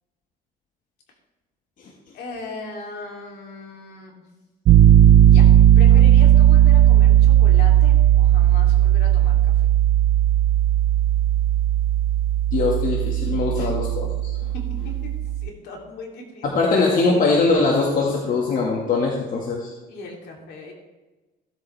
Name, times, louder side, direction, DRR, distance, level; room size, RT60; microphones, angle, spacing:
voice 1, 2.1-4.3 5.2-5.5 5.8-9.5 13.5-13.7 15.4-16.8 19.9-20.7, left 3 dB, 75° left, 0 dB, 2.9 m, -38 dB
Piano, 4.7-15.5, right 12 dB, 60° right, 0.4 m, -16 dB
voice 2, 12.5-14.3 16.4-19.7, left 3 dB, 55° left, -1 dB, 1.7 m, -21 dB
15.5 x 8.5 x 3.3 m, 1.1 s
cardioid pair, 110°, 17 cm